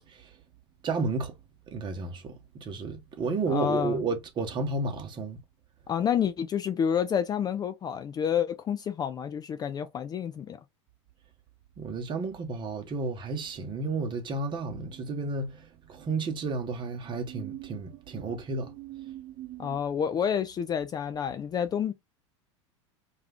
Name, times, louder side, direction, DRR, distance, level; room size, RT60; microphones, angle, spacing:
voice 1, 0.8-1.3 1.7-5.4 11.8-19.8, right 3 dB, 30° right, 0.9 m, -32 dB
voice 2, 3.5-4.0 5.9-10.6 19.6-21.9, left 8 dB, 25° left, 0.4 m, -29 dB
2.4 x 2.3 x 3.4 m
hypercardioid pair, 95°, 15 cm